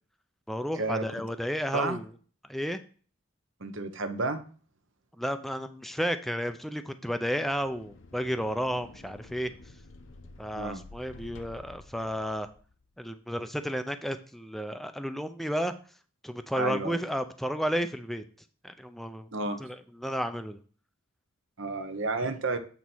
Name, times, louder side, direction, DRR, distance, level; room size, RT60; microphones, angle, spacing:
voice 1, 0.5-2.1 2.5-2.8 5.2-9.5 10.4-12.5 13.0-15.7 16.2-18.2 18.6-19.3 19.6-20.6, equal, ahead, 9 dB, 0.5 m, -32 dB
voice 2, 3.6-4.4 10.5-10.8 16.6-17.0 19.3-19.6 21.6-22.6, right 3 dB, 65° right, 8 dB, 0.9 m, -31 dB
sound 1, 7.4-12.9, left 3 dB, 60° left, 0.8 m, -51 dB
8.2 x 4.1 x 6.1 m, 0.41 s
head